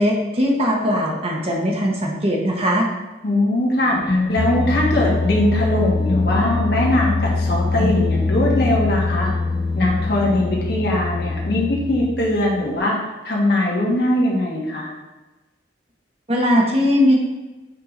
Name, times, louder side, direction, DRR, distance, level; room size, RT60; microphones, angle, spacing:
voice 1, 0.0-2.9 16.3-17.1, equal, 35° right, -1 dB, 1.2 m, -19 dB
voice 2, 3.2-9.3 9.7-13.0 13.2-14.9, left 1 dB, 65° left, -4 dB, 1.6 m, -21 dB
sound 1, 3.9-12.7, left 3 dB, 25° left, 0.3 m, -22 dB
6.6 x 4.8 x 3.9 m, 1.1 s
head